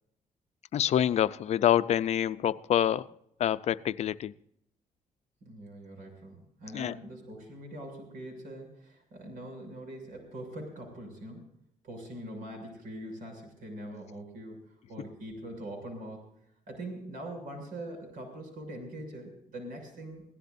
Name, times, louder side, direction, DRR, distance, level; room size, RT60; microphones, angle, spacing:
voice 1, 0.7-3.1 3.4-4.3 6.7-6.9, left 10 dB, 50° left, 0.5 m, -26 dB
voice 2, 5.4-11.5 11.8-16.3 16.7-20.2, right 1 dB, 75° right, 6.8 m, -43 dB
23.5 x 17.0 x 2.7 m
cardioid pair, 175°, 14 cm